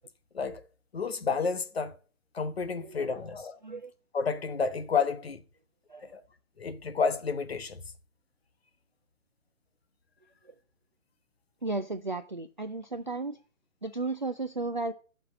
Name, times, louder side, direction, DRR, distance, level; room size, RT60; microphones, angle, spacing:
voice 1, 0.9-2.0 2.3-3.6 4.1-5.4 6.0-6.2 6.6-7.8, left 5 dB, 45° left, 1.1 m, -30 dB
voice 2, 2.8-3.2 3.6-3.9 5.9-6.1 10.5-10.6 11.6-13.4 13.8-14.9, right 3 dB, 35° right, 0.4 m, -34 dB
9.8 x 6.0 x 6.6 m
figure-of-eight pair, 140°, 42 cm